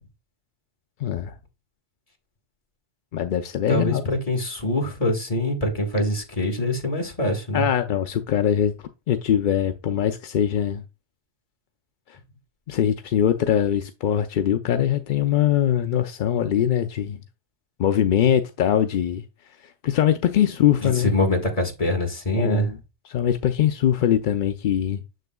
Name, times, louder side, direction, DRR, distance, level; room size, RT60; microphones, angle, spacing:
voice 1, 1.0-1.4 3.1-4.1 7.5-8.7 9.1-10.8 12.1-12.2 12.7-17.2 17.8-19.2 19.6-21.1 22.4-22.8 23.0-25.0, left 10 dB, 60° left, 0.5 m, -22 dB
voice 2, 3.7-7.7 20.8-22.7, left 1 dB, 30° left, 1.7 m, -24 dB
7.0 x 6.6 x 2.2 m
omnidirectional pair, 1.2 m